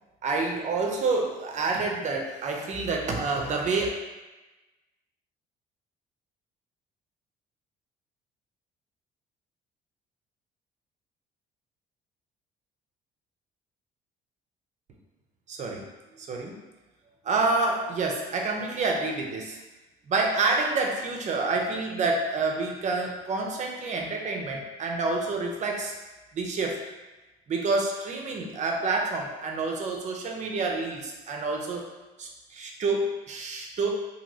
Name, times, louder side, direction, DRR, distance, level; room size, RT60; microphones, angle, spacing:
voice 1, 0.2-3.9 15.5-15.9 16.2-16.6 17.2-19.6 20.1-25.9 26.3-26.8 27.5-31.9 32.2-33.9, right 3 dB, 45° right, 1 dB, 0.6 m, -28 dB
2.9 x 2.8 x 2.7 m, 1.1 s
cardioid pair, 110°, 17 cm